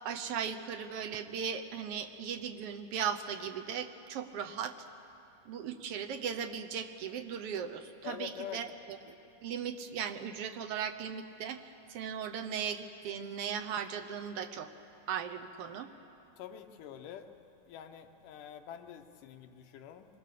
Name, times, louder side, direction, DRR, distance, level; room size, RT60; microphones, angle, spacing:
voice 1, 0.0-4.7 5.5-9.1 9.4-11.6 11.9-14.7 15.1-15.9, right 7 dB, 70° right, 6 dB, 1.4 m, -37 dB
voice 2, 8.0-8.6 16.4-17.3 17.7-20.1, left 9 dB, 85° left, 7 dB, 2.6 m, -45 dB
25.5 x 22.5 x 6.7 m, 2.8 s
omnidirectional pair, 3.7 m